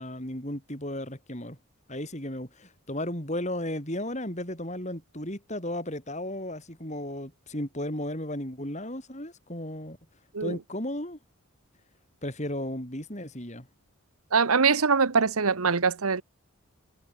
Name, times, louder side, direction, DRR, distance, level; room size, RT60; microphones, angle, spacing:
voice 1, 0.0-1.6 1.9-10.0 10.4-11.2 12.2-13.7, left 1 dB, 30° left, 6.3 m, -34 dB
voice 2, 14.3-16.2, right 5 dB, 85° right, 1.1 m, -23 dB
head